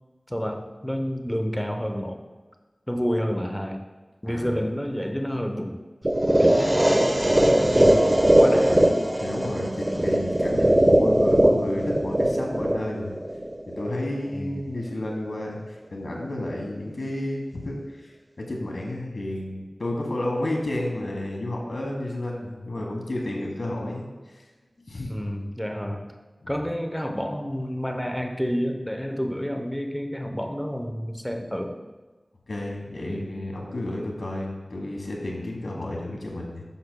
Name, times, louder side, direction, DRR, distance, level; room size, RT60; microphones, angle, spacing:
voice 1, 0.3-2.2 2.9-3.8 4.2-5.8 6.4-8.9 9.9-10.1 14.3-14.6 25.1-26.1 26.5-31.8 33.1-33.3, equal, 10° left, 5 dB, 0.7 m, -29 dB
voice 2, 4.2-4.6 8.7-8.9 9.2-13.1 13.8-18.1 18.4-24.1 24.8-25.1 26.4-26.7 32.5-36.6, left 1 dB, 80° left, 0 dB, 1.4 m, -31 dB
sound 1, 6.0-14.0, right 1 dB, 25° right, 0.9 m, -20 dB
9.9 x 6.0 x 2.2 m, 1.3 s
wide cardioid pair, 55°, 0 cm